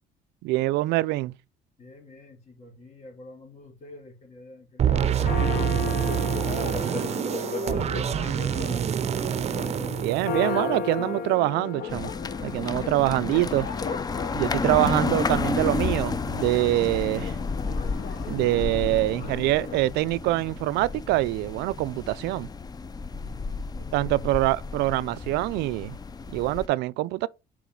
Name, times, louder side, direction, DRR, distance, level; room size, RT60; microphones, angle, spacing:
voice 1, 0.4-1.3 10.0-12.1 12.4-13.7 14.3-17.4 18.3-22.5 23.9-26.0 26.3-27.3, right 18 dB, 85° right, 0.4 m, -25 dB
voice 2, 1.8-6.5 7.6-8.8 23.1-24.4, left 2 dB, 40° left, 3.3 m, -48 dB
Church bell, 4.8-19.8, left 6 dB, 60° left, 1.2 m, -35 dB
sound 1, 4.8-11.0, right 9 dB, 40° right, 0.6 m, -26 dB
sound 2, 11.9-26.7, left 4 dB, 25° left, 0.5 m, -32 dB
7.1 x 4.9 x 3.8 m
cardioid pair, 110°, 17 cm